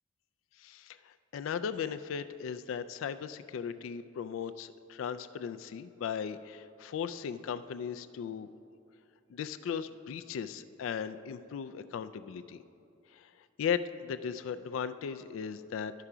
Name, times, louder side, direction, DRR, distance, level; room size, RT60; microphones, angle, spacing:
voice 1, 0.6-1.0 1.3-8.5 9.3-12.6 13.1-13.3 13.6-15.9, left 7 dB, 80° left, 11 dB, 0.3 m, -37 dB
12.0 x 5.7 x 4.9 m, 2.7 s
head